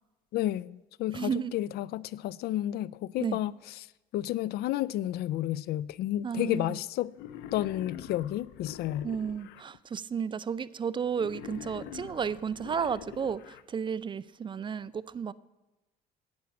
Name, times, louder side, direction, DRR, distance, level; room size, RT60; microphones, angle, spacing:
voice 1, 0.3-3.9 4.1-7.1 7.5-9.1, left 14 dB, 70° left, 0.4 m, -31 dB
voice 2, 1.1-1.5 3.2-3.4 6.2-6.8 9.0-15.3, right 7 dB, 30° right, 0.4 m, -33 dB
Wild animals, 7.1-9.6 11.1-13.6, left 9 dB, 90° left, 0.8 m, -45 dB
10.5 x 8.7 x 7.2 m
cardioid pair, 110°, 17 cm